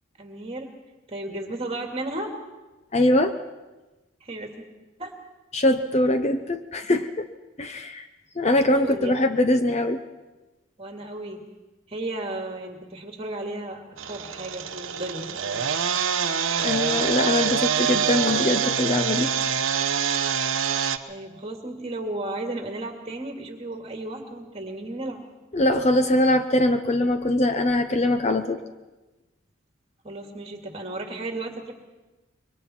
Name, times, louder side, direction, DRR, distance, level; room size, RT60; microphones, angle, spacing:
voice 1, 0.2-0.7 1.1-2.3 4.2-4.7 5.0-5.1 8.7-9.5 10.8-11.4 11.9-15.6 21.1-25.2 30.0-31.7, right 2 dB, 30° right, 3 dB, 2.3 m, -34 dB
voice 2, 2.9-3.3 5.5-7.3 7.6-8.1 8.4-10.0 16.6-19.3 25.5-28.6, left 1 dB, 30° left, 8 dB, 0.7 m, -22 dB
sound 1, 14.0-21.0, right 7 dB, 75° right, 0.9 m, -25 dB
25.5 x 23.0 x 4.4 m, 1.1 s
head